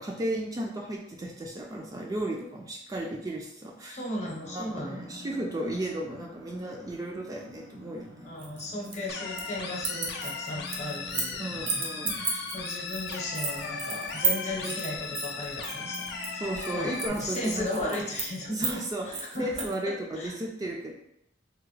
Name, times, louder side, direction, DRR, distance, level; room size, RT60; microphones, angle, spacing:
voice 1, 0.0-4.0 4.5-8.3 11.4-12.4 16.4-18.0 18.5-20.9, right 1 dB, 20° right, -1 dB, 0.3 m, -34 dB
voice 2, 3.9-5.0 8.2-18.7 19.0-20.3, left 1 dB, 35° left, -2 dB, 0.8 m, -36 dB
sound 1, 4.2-18.6, left 1 dB, 85° right, 1.0 m, -50 dB
sound 2, 8.4-9.5 9.8-11.4 11.7-19.7, right 4 dB, 60° right, 0.7 m, -33 dB
sound 3, 9.1-17.1, left 5 dB, 60° left, 0.4 m, -37 dB
3.4 x 2.1 x 3.2 m, 0.77 s
head